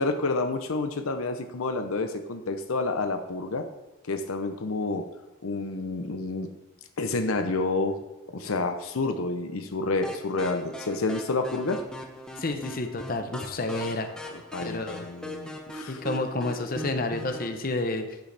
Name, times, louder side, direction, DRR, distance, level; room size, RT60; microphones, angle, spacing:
voice 1, 0.0-3.7 4.1-5.1 5.4-6.5 7.0-8.0 8.3-11.8 14.5-16.0, left 3 dB, 75° left, 6 dB, 0.6 m, -29 dB
sound 1, 10.0-17.6, equal, 5° left, 0.7 m, -40 dB
voice 2, 12.4-14.1 14.6-15.1 15.9-18.2, left 2 dB, 40° left, 6 dB, 0.8 m, -30 dB
9.0 x 7.9 x 3.4 m, 1.0 s
head